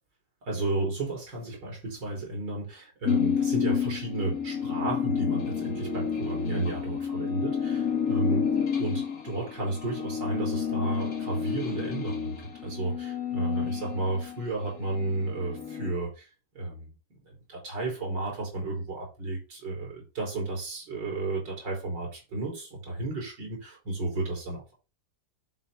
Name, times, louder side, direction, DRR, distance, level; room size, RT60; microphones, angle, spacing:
voice 1, 0.4-8.5 8.8-12.4 12.6-16.3 16.5-24.7, right 2 dB, 85° right, 4.5 m, -32 dB
sound 1, 3.0-14.4 14.9-15.9, left 7 dB, 55° left, 2.0 m, -30 dB
11.0 x 4.2 x 3.7 m
omnidirectional pair, 1.9 m